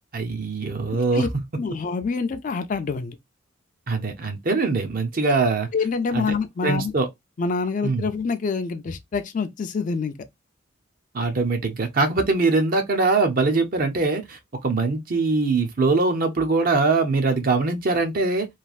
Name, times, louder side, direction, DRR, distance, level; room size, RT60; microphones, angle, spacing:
voice 1, 0.1-1.3 3.9-5.7 6.1-6.3 6.6-7.1 7.8-8.1 11.1-18.5, right 3 dB, 45° right, 0.6 m, -22 dB
voice 2, 1.6-3.2 5.7-6.9 7.4-10.1, left 4 dB, 40° left, 0.4 m, -26 dB
3.2 x 2.4 x 2.4 m
head